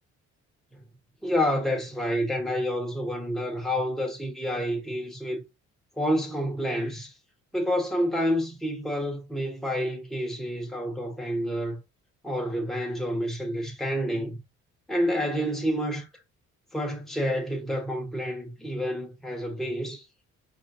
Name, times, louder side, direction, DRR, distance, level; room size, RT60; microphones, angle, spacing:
voice 1, 1.2-5.4 6.0-7.1 7.5-11.8 12.2-14.4 14.9-16.1 16.7-20.0, equal, ahead, 1.1 m, -28 dB
4.8 x 2.7 x 2.7 m
cardioid pair, 90°, 30 cm